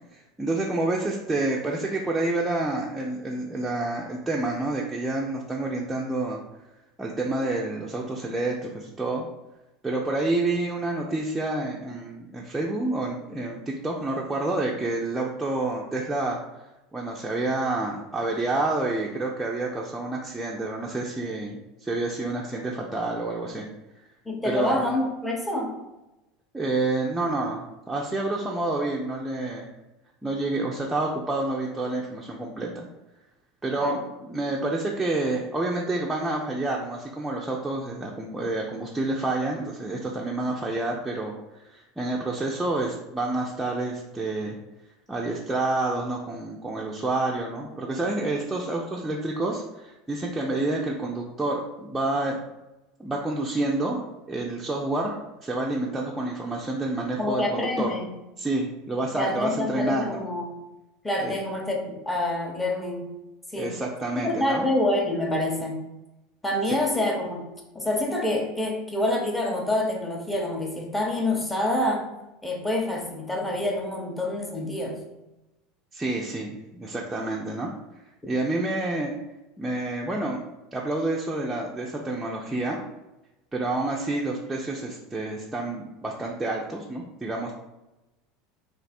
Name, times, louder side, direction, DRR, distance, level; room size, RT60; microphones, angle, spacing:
voice 1, 0.1-6.4 7.0-9.3 9.8-16.4 16.9-23.7 24.4-24.8 26.5-29.7 30.2-32.8 33.6-44.6 45.1-52.4 53.0-57.9 58.4-60.2 61.2-61.4 63.5-64.6 75.9-77.7 78.3-79.1 79.6-80.5 80.7-82.8 83.5-87.5, right 2 dB, 10° right, -3 dB, 0.5 m, -28 dB
voice 2, 24.2-25.8 33.8-34.0 57.2-58.1 59.1-60.6 61.0-63.1 63.5-63.7 64.1-65.8 66.4-67.4 67.7-72.1 72.4-75.0, left 1 dB, 10° left, 0 dB, 0.9 m, -27 dB
3.2 x 2.6 x 4.1 m, 0.98 s
figure-of-eight pair, 75°, 0 cm